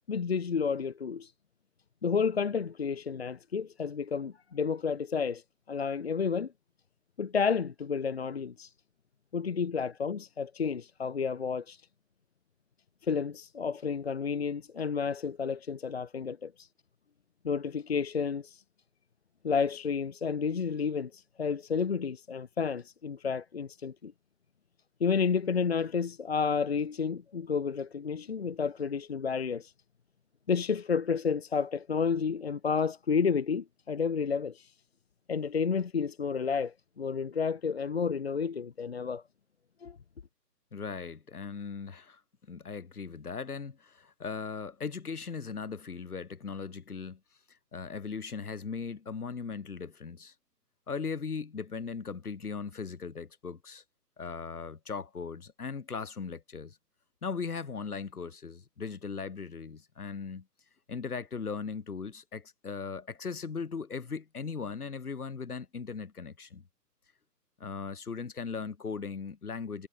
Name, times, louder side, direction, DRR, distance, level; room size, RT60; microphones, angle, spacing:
voice 1, 0.1-1.3 2.0-5.4 5.7-6.5 7.2-8.7 9.3-11.8 13.0-16.7 17.4-18.6 19.4-24.1 25.0-29.7 30.5-34.7 35.3-39.2 39.8-40.0, left 6 dB, 40° left, 2.0 m, -31 dB
voice 2, 40.7-42.2 42.5-47.2 47.7-50.3 50.9-53.8 54.2-56.8 57.2-60.4 60.9-66.6 67.6-69.9, left 5 dB, 60° left, 6.4 m, -38 dB
hypercardioid pair, 180°, 49 cm